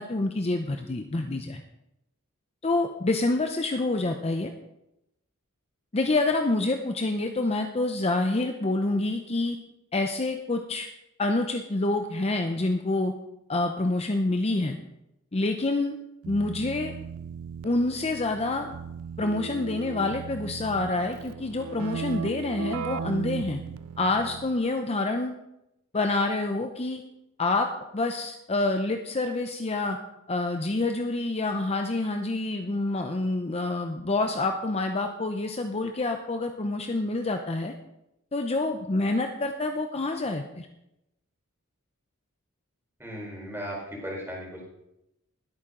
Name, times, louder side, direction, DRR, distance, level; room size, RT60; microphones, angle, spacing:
voice 1, 0.0-1.6 2.6-4.5 5.9-9.6 9.9-10.9 11.2-13.1 13.5-14.8 15.3-16.0 16.3-16.9 17.6-18.7 19.2-23.6 24.0-25.3 25.9-27.0 27.4-30.0 30.3-37.7 38.3-40.7, left 2 dB, 30° left, 5 dB, 0.6 m, -27 dB
Keyboard (musical), 16.2-24.7, right 6 dB, 70° right, 0.4 m, -37 dB
voice 2, 43.0-44.6, equal, 10° right, -3 dB, 4.3 m, -36 dB
20.5 x 8.7 x 3.8 m, 0.88 s
head